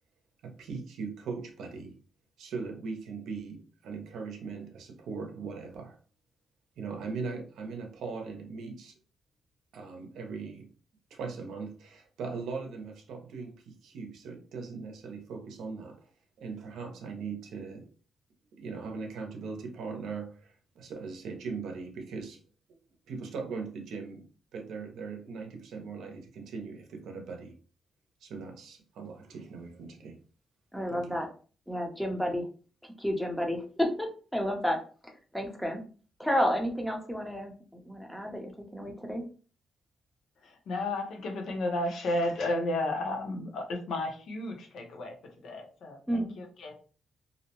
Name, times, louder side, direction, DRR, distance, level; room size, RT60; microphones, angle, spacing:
voice 1, 0.4-1.9 2.4-6.0 6.8-9.0 9.7-10.7 11.1-16.1 16.4-17.9 18.6-22.4 23.1-24.2 24.5-27.5 28.2-30.2 30.9-31.2, right 4 dB, 85° right, 4 dB, 0.6 m, -39 dB
voice 2, 30.7-31.3 31.7-32.5 33.0-34.8 35.3-35.8 36.2-37.5 37.9-39.2 46.1-46.3, equal, ahead, 2 dB, 0.5 m, -31 dB
voice 3, 40.4-46.7, left 2 dB, 65° left, 3 dB, 0.7 m, -33 dB
2.6 x 2.1 x 2.8 m, 0.38 s
cardioid pair, 160°, 0 cm